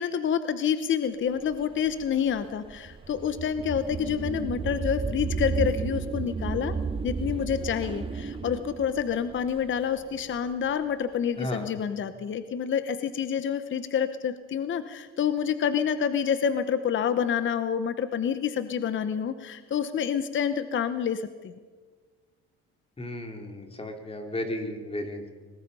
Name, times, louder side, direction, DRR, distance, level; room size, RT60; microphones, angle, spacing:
voice 1, 0.0-6.7 7.0-21.5, left 8 dB, 40° left, 11 dB, 0.9 m, -28 dB
sound 1, 1.5-10.5, right 5 dB, 20° right, 0.8 m, -33 dB
voice 2, 11.4-11.7 23.0-25.3, left 1 dB, 20° left, 4 dB, 3.3 m, -34 dB
24.5 x 19.5 x 5.5 m, 1.5 s
cardioid pair, 110°, 29 cm